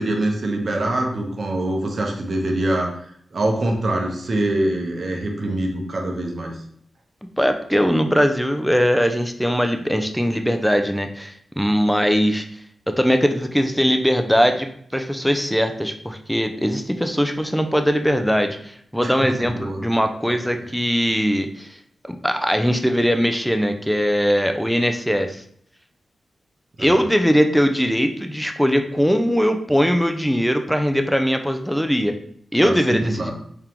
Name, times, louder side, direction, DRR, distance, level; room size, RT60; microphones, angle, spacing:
voice 1, 0.0-2.9 3.3-6.6 19.0-19.8 26.8-27.0 32.6-33.3, right 1 dB, 50° right, 1 dB, 0.8 m, -24 dB
voice 2, 7.4-12.5 12.9-21.8 22.0-25.4 26.8-32.2 32.5-33.3, equal, ahead, 6 dB, 0.4 m, -20 dB
3.7 x 3.5 x 2.9 m, 0.65 s
wide cardioid pair, 115°, 0 cm